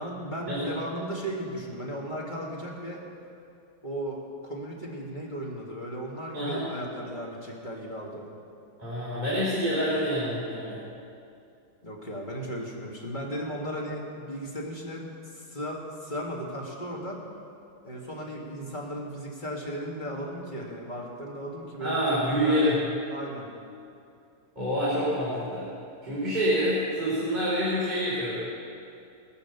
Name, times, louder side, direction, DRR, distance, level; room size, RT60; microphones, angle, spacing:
voice 1, 0.0-3.0 3.8-8.3 11.8-17.2 17.8-23.5, equal, 20° left, -3 dB, 2.0 m, -36 dB
voice 2, 6.3-6.6 8.8-10.9 21.8-22.8 24.6-25.7 26.0-28.4, equal, 20° right, -10 dB, 3.4 m, -27 dB
21.0 x 7.0 x 6.8 m, 2.5 s
omnidirectional pair, 2.4 m